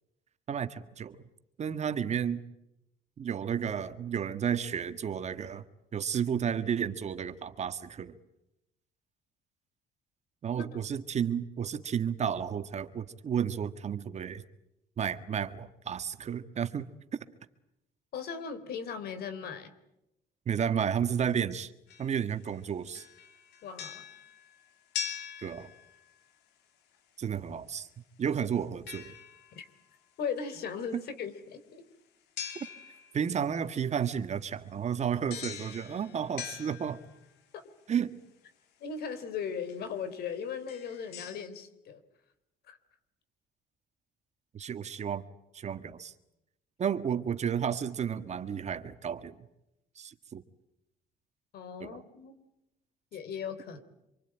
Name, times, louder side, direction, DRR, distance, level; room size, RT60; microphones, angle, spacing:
voice 1, 0.5-1.2 1.6-2.4 3.2-5.6 5.9-8.1 10.4-14.4 15.0-16.9 20.4-21.7 22.0-23.0 25.4-25.7 27.2-27.9 28.2-29.1 33.1-37.0 37.9-38.1 44.5-45.2 45.5-46.1 46.8-49.4 49.9-50.4 51.8-52.0, right 8 dB, 40° right, 10 dB, 1.6 m, -32 dB
voice 2, 18.1-19.7 23.6-24.0 29.6-29.7 30.2-31.8 38.8-42.0 42.7-42.8 51.5-52.4 53.1-53.8, left 6 dB, 70° left, 11 dB, 3.7 m, -38 dB
sound 1, 21.9-22.6 22.9-26.2 28.9-29.7 32.4-33.3 35.3-37.4 38.9-39.0 39.7-39.9 40.5-41.5, left 8 dB, 85° left, 3.1 m, -42 dB
26.5 x 24.5 x 9.0 m, 0.88 s
cardioid pair, 110°, 17 cm